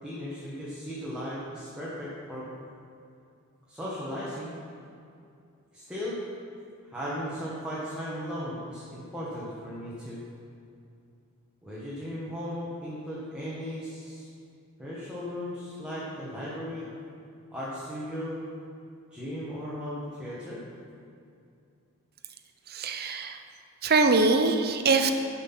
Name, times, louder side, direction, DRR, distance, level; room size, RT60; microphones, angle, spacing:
voice 1, 0.0-2.5 3.7-4.6 5.7-6.2 6.8-10.2 11.6-14.3 14.8-16.9 17.5-18.4 19.1-20.6, equal, 5° right, -9 dB, 1.6 m, -36 dB
voice 2, 22.7-23.4 23.8-25.1, right 3 dB, 45° right, 6 dB, 0.7 m, -23 dB
11.0 x 6.0 x 6.0 m, 2.5 s
head